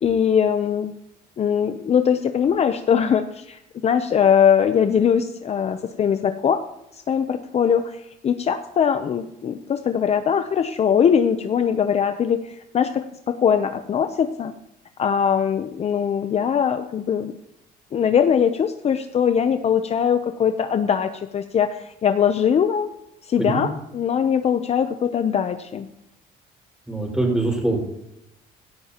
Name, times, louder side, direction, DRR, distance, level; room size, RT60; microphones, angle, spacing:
voice 1, 0.0-0.9 1.4-6.6 6.9-14.5 15.0-17.3 17.9-22.9 23.2-25.9, left 7 dB, 40° left, 9 dB, 0.7 m, -21 dB
voice 2, 26.9-27.8, right 2 dB, 5° right, -1 dB, 5.1 m, -23 dB
17.0 x 13.5 x 3.0 m, 0.82 s
cardioid pair, 110°, 17 cm